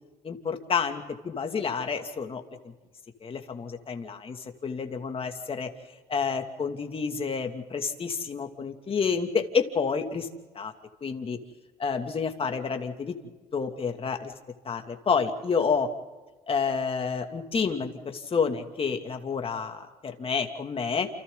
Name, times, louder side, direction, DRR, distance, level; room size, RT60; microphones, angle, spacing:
voice 1, 0.2-2.7 3.2-5.7 6.1-10.3 10.5-10.7 11.0-11.4 11.8-13.1 13.5-14.3 14.6-15.9 16.5-21.1, left 5 dB, 35° left, 5 dB, 2.7 m, -29 dB
29.5 x 28.5 x 4.0 m, 1.2 s
cardioid pair, 110°, 17 cm